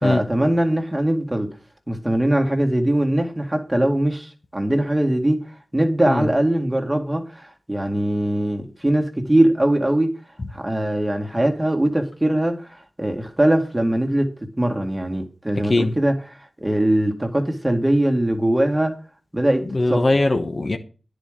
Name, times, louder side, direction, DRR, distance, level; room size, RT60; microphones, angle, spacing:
voice 1, 0.0-1.5 1.9-5.4 5.7-10.1 10.5-19.0 19.3-19.6 19.9-20.1, right 1 dB, 15° right, 2.1 m, -21 dB
voice 2, 19.7-20.8, left 2 dB, 50° left, 1.2 m, -20 dB
9.9 x 5.0 x 7.5 m
cardioid pair, 50°, 0 cm